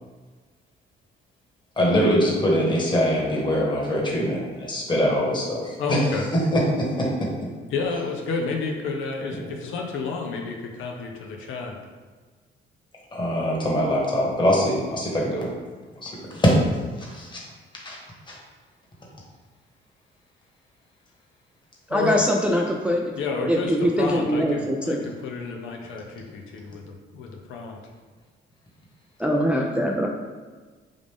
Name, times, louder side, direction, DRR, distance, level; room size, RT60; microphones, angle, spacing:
voice 1, 1.8-7.3 13.1-15.5 16.0-16.5 17.1-17.4 17.8-18.0 18.3-18.4, equal, 25° left, -4 dB, 1.3 m, -23 dB
voice 2, 5.8-6.3 7.7-11.8 21.9-22.2 23.2-26.8 27.1-27.8, left 4 dB, 80° left, 2 dB, 0.6 m, -30 dB
voice 3, 21.9-23.2 23.4-25.1 29.2-30.1, equal, 5° right, -1 dB, 0.4 m, -23 dB
5.0 x 2.5 x 3.5 m, 1.4 s
cardioid pair, 90°, 20 cm